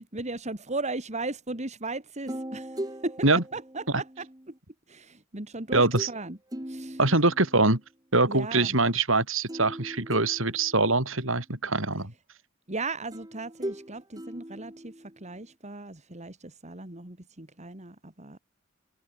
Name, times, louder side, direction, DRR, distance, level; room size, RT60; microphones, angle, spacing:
voice 1, 0.0-3.3 3.5-4.3 4.9-6.4 6.7-7.0 8.3-8.8 12.7-18.4, right 3 dB, 35° right, 2.7 m, -36 dB
sound 1, 2.3-4.6 6.0-6.2 6.5-7.8 9.5-11.2 13.1-15.4, right 1 dB, 20° right, 3.6 m, -39 dB
voice 2, 5.7-6.1 7.0-7.8 8.1-12.1, right 2 dB, 70° right, 6.9 m, -23 dB
head